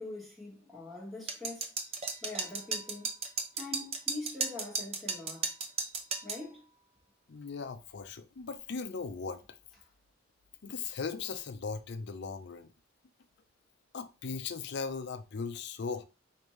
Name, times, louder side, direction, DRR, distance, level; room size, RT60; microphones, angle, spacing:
voice 1, 0.0-1.7 2.2-3.1 3.5-5.5 6.2-6.7, left 2 dB, ahead, 1.4 m, -43 dB
sound 1, 1.3-6.4, right 4 dB, 35° right, 0.6 m, -34 dB
voice 2, 7.3-9.4 10.6-12.7 13.9-16.0, left 5 dB, 60° left, 0.5 m, -38 dB
5.1 x 2.6 x 3.1 m
head